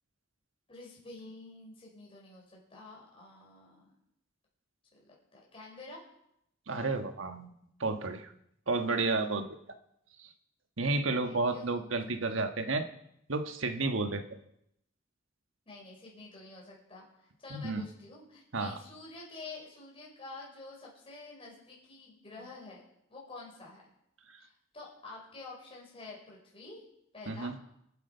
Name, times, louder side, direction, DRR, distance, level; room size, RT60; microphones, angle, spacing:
voice 1, 0.7-3.9 4.9-6.0 11.2-12.5 15.7-22.8 23.1-23.8 24.4-26.8 27.1-27.5, left 3 dB, 30° left, -3 dB, 4.9 m, -49 dB
voice 2, 6.7-7.5 7.8-8.3 8.7-9.5 10.2-10.3 10.8-12.9 13.3-14.2 17.5-17.8 18.5-18.8 27.3-27.6, right 3 dB, 80° right, 7 dB, 1.4 m, -31 dB
24.0 x 8.3 x 5.6 m, 0.77 s
head